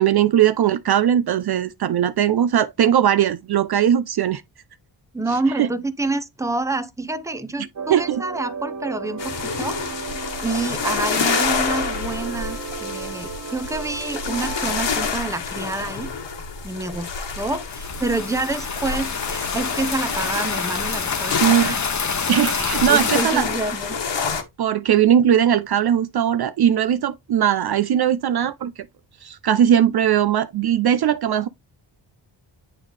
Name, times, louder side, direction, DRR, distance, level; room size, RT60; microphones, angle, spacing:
voice 1, 0.0-4.4 5.6-5.7 7.9-8.2 21.4-21.7 22.3-23.4 24.6-28.7 29.2-31.5, right 10 dB, 55° right, 0.5 m, -19 dB
voice 2, 5.1-9.8 10.4-16.1 16.6-21.8 22.5-24.0, right 3 dB, 5° right, 0.7 m, -28 dB
sound 1, 7.8-14.8, right 5 dB, 35° right, 0.8 m, -34 dB
sound 2, 9.2-24.4, left 5 dB, 65° left, 1.4 m, -28 dB
sound 3, 17.7-23.2, left 5 dB, 40° left, 0.9 m, -27 dB
9.0 x 3.7 x 3.3 m
wide cardioid pair, 90°, 46 cm